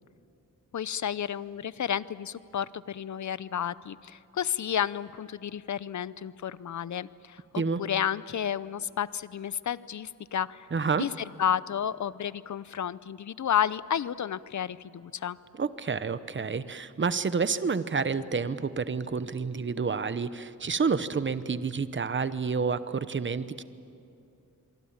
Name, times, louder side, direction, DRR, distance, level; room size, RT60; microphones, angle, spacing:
voice 1, 0.7-10.7 11.0-11.1 11.4-15.4, left 9 dB, 60° left, 17 dB, 0.7 m, -31 dB
voice 2, 10.7-11.1 15.5-23.6, right 5 dB, 35° right, 13 dB, 0.9 m, -29 dB
26.0 x 23.5 x 8.9 m, 2.6 s
wide cardioid pair, 95°, 33 cm